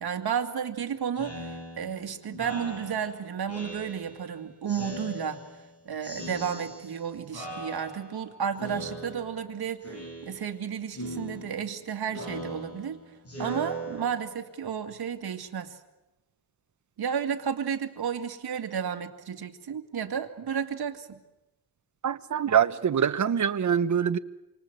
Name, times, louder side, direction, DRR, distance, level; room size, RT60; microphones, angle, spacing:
voice 1, 0.0-5.4 5.9-13.0 13.4-15.8 17.0-21.2, right 7 dB, 65° right, 2.2 m, -32 dB
Speech synthesizer, 1.2-4.3 4.7-5.7 6.0-7.0 7.3-8.2 8.6-9.5 9.8-10.6 10.9-14.5, right 1 dB, 35° left, 5.9 m, -40 dB
voice 2, 22.0-24.2, right 8 dB, 45° right, 1.0 m, -24 dB
28.0 x 24.5 x 8.0 m
wide cardioid pair, 165°, 41 cm